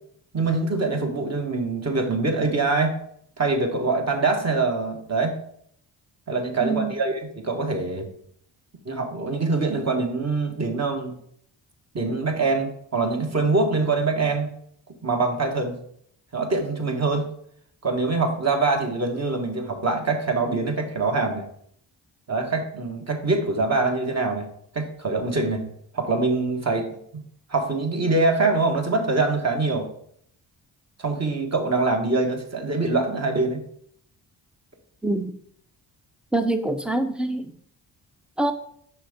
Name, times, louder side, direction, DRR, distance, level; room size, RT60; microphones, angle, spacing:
voice 1, 0.3-3.0 3.4-5.4 6.3-8.1 8.8-11.2 11.9-14.5 15.0-15.8 16.3-17.3 17.8-21.5 22.3-25.6 25.9-27.2 27.5-29.9 31.0-33.6, right 3 dB, 35° right, 3 dB, 1.4 m, -24 dB
voice 2, 36.3-37.5 38.4-38.5, right 2 dB, ahead, 9 dB, 0.7 m, -24 dB
5.8 x 3.5 x 5.0 m, 0.67 s
supercardioid pair, 45°, 47 cm